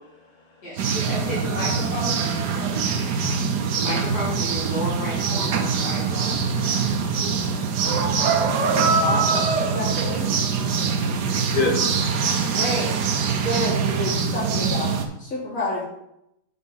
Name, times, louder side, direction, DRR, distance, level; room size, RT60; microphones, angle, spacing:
voice 1, 0.6-2.9 3.8-6.4, left 1 dB, 70° left, -8 dB, 3.1 m, -32 dB
sound 1, 0.8-15.1, right 5 dB, 90° right, 1.4 m, -23 dB
voice 2, 6.6-8.5 11.1-11.3 11.5-12.1 12.5-12.6, left 3 dB, 35° left, 0 dB, 1.7 m, -30 dB
voice 3, 9.0-10.3 12.5-12.9 13.4-14.9 15.2-15.8, left 1 dB, 50° left, -7 dB, 3.6 m, -29 dB
6.9 x 5.1 x 5.7 m, 0.81 s
omnidirectional pair, 1.7 m